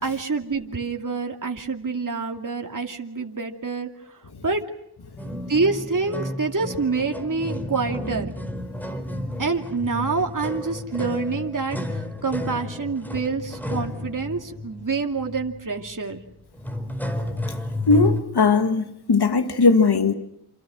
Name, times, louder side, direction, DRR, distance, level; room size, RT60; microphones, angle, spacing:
voice 1, 0.0-3.9 4.4-4.6 5.3-8.3 9.4-16.2, right 4 dB, 50° right, 2.6 m, -27 dB
sound 1, 5.2-18.2, left 1 dB, 5° left, 4.6 m, -31 dB
voice 2, 17.9-20.1, left 4 dB, 70° left, 2.2 m, -19 dB
28.0 x 27.5 x 6.3 m
cardioid pair, 45°, 40 cm